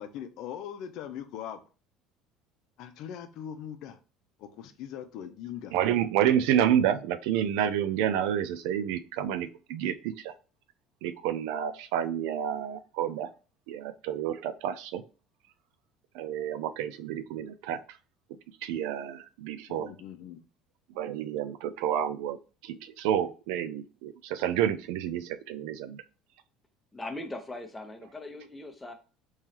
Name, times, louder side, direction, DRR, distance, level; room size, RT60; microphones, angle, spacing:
voice 1, 0.0-1.6 2.8-4.0 4.4-5.7 19.7-20.4, left 9 dB, 65° left, 0.6 m, -40 dB
voice 2, 5.7-10.3 11.0-13.3 13.7-15.0 16.1-17.8 18.6-19.9 21.0-22.4 22.6-26.0, right 10 dB, 80° right, 0.4 m, -29 dB
voice 3, 26.9-28.9, left 2 dB, 10° left, 0.8 m, -40 dB
3.7 x 3.1 x 2.9 m
supercardioid pair, 115°, 0 cm